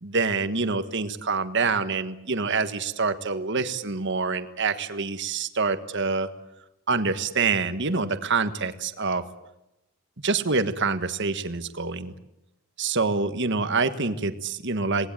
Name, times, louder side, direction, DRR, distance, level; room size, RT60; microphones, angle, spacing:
voice 1, 0.0-6.3 6.9-9.2 10.2-12.1 12.8-15.1, right 4 dB, 55° right, 10 dB, 1.5 m, -26 dB
27.0 x 19.0 x 9.1 m, 0.88 s
head